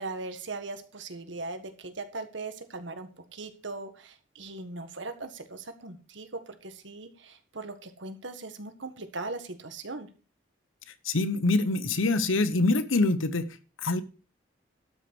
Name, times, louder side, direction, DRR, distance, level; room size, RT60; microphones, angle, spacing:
voice 1, 0.0-10.1, right 3 dB, 70° right, 9 dB, 1.6 m, -39 dB
voice 2, 11.0-13.5 13.8-14.0, left 2 dB, 85° left, 14 dB, 1.0 m, -25 dB
12.5 x 6.1 x 6.2 m, 0.36 s
head